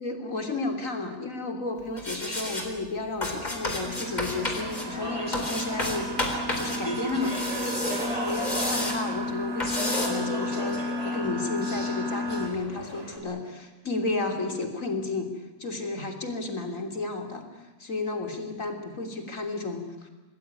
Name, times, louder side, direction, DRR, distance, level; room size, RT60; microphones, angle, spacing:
voice 1, 0.0-7.4 7.8-15.3 15.6-17.4 17.8-20.1, left 3 dB, 55° left, 4 dB, 3.8 m, -32 dB
sound 1, 2.0-2.7 3.2-4.9 5.3-6.8 7.1-9.0 9.6-10.1, left 1 dB, 25° left, 4.4 m, -31 dB
Speech / Chatter, 3.8-13.2, right 1 dB, 25° right, 4.9 m, -37 dB
sound 2, 3.8-12.5, left 1 dB, 70° right, 3.0 m, -33 dB
27.0 x 19.5 x 9.7 m, 1.1 s
omnidirectional pair, 1.6 m